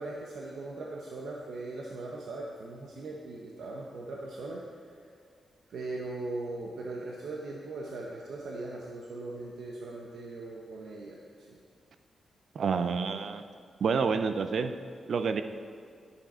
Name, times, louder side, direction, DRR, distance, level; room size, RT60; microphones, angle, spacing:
voice 1, 0.0-4.6 5.7-11.6, right 2 dB, 80° right, -2 dB, 0.9 m, -39 dB
voice 2, 12.5-13.4 13.8-14.7 15.1-15.4, right 5 dB, 60° right, 9 dB, 0.5 m, -28 dB
10.5 x 7.0 x 4.3 m, 2.2 s
wide cardioid pair, 115°, 0 cm